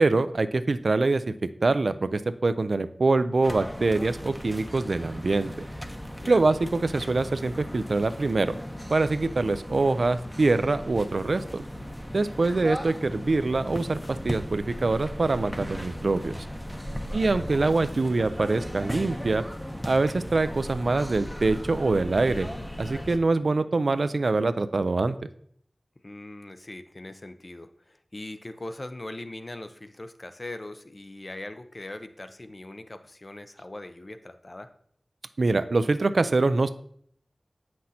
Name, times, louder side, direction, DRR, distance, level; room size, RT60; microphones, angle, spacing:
voice 1, 0.0-1.3 1.6-5.5 6.3-8.6 8.9-11.6 12.1-16.5 17.1-19.4 19.9-22.5 22.8-25.2 35.4-36.7, right 3 dB, 75° right, 12 dB, 0.3 m, -24 dB
sound 1, 3.4-23.2, equal, 5° left, 0.7 m, -37 dB
voice 2, 16.9-17.4 26.0-34.7, left 2 dB, 45° left, 9 dB, 0.5 m, -41 dB
7.4 x 6.0 x 2.7 m, 0.63 s
wide cardioid pair, 45°, 0 cm